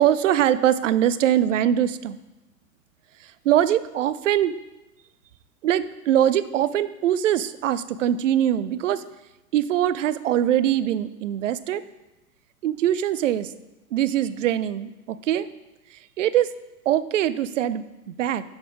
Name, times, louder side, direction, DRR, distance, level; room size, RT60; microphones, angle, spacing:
voice 1, 0.0-2.2 3.2-4.6 5.6-9.0 9.5-11.8 12.6-13.5 13.9-15.5 15.9-16.5 16.9-18.4, right 11 dB, 55° right, 15 dB, 0.6 m, -22 dB
9.8 x 7.2 x 3.6 m, 1.0 s
figure-of-eight pair, 105°, 45 cm